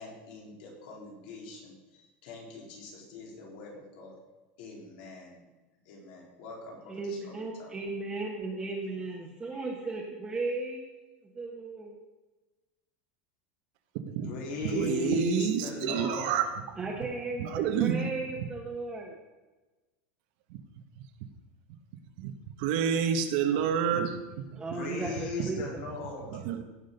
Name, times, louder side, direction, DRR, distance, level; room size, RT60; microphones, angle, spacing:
voice 1, 0.0-4.2 4.6-5.4 5.9-7.7 9.5-9.7 14.2-16.4 24.7-26.4, left 3 dB, 65° left, -1 dB, 3.9 m, -39 dB
voice 2, 6.9-10.8 11.2-12.0 16.8-19.2 24.6-25.8, right 3 dB, 15° right, -3 dB, 1.4 m, -36 dB
voice 3, 14.7-16.5 17.4-18.0 22.2-22.3 22.6-24.1 24.5-24.6 26.3-26.6, right 8 dB, 60° right, 7 dB, 1.3 m, -28 dB
16.5 x 6.4 x 5.3 m, 1.2 s
supercardioid pair, 160°, 5 cm